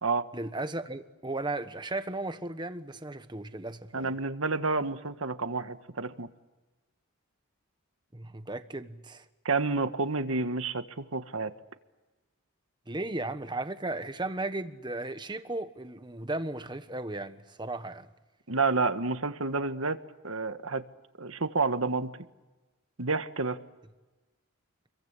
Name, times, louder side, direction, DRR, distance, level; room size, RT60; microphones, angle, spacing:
voice 1, 0.3-4.1 8.1-9.2 12.9-18.1, right 2 dB, 20° right, 1.3 m, -35 dB
voice 2, 3.9-6.3 9.4-11.5 18.5-20.8 21.2-22.1 23.0-23.6, right 3 dB, 70° right, 1.5 m, -29 dB
29.5 x 23.0 x 8.2 m
head